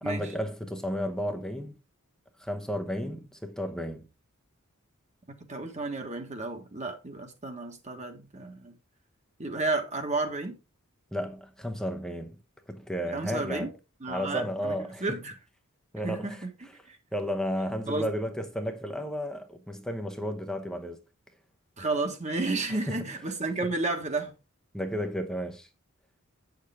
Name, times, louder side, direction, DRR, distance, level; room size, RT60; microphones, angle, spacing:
voice 1, 0.0-1.8 2.4-4.1 11.1-12.4 12.7-13.7 14.1-15.3 15.9-16.4 17.1-21.0 22.9-23.1 24.7-25.7, equal, 5° left, 0.9 m, -33 dB
voice 2, 5.3-8.7 9.4-10.6 13.1-13.7 14.0-14.7 15.0-15.3 16.0-16.5 16.9-17.0 17.9-18.1 21.8-24.3, right 3 dB, 35° right, 1.6 m, -32 dB
8.9 x 6.7 x 3.5 m
head